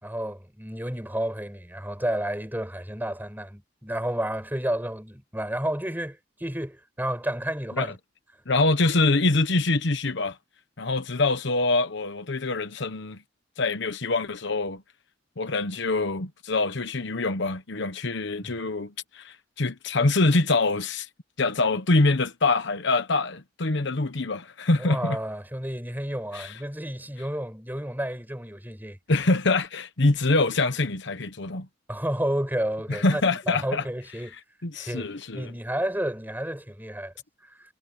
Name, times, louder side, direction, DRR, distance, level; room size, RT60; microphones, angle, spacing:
voice 1, 0.0-7.9 18.4-18.5 24.8-29.0 31.9-34.4 34.7-37.1, right 1 dB, 10° right, 5.9 m, -31 dB
voice 2, 8.5-10.4 10.8-13.2 13.6-14.8 15.4-21.1 21.4-25.2 26.3-26.6 29.1-31.7 32.9-33.8 34.3-35.6, left 3 dB, 65° left, 1.1 m, -25 dB
head